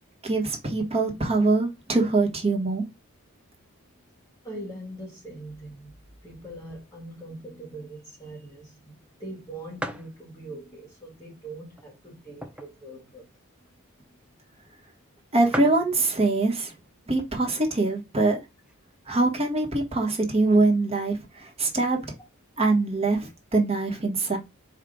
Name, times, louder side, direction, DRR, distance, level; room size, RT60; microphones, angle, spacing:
voice 1, 0.2-2.8 15.3-16.7 17.1-18.4 19.1-22.0 22.6-24.4, right 2 dB, 30° right, 1.1 m, -23 dB
voice 2, 4.4-6.0 6.2-13.3, right 1 dB, 15° left, 1.2 m, -42 dB
sound 1, 9.8-10.2 10.8-10.9 11.7-12.9 13.2-13.3 13.5-13.8 14.5-14.6 14.9-15.0 15.2-15.3 15.5-15.9 16.8-17.1 17.7-17.8 17.9-18.7, right 1 dB, 5° right, 0.4 m, -36 dB
4.7 x 2.4 x 3.8 m
head